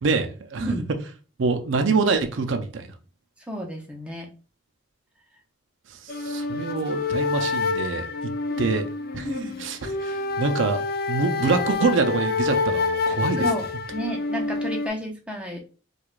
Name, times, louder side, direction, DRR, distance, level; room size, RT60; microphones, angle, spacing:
voice 1, 0.0-0.7 1.4-2.9 5.9-8.1 8.6-8.8 9.1-9.3 9.6-10.8 11.1-13.5, right 4 dB, 75° right, 0.5 m, -25 dB
voice 2, 0.6-0.9 3.5-4.3 8.5-8.7 9.2-9.6 13.1-13.7 13.9-15.6, right 1 dB, 5° right, 0.6 m, -32 dB
sound 1, 6.1-14.9, left 4 dB, 50° left, 0.3 m, -27 dB
4.6 x 2.3 x 2.4 m
head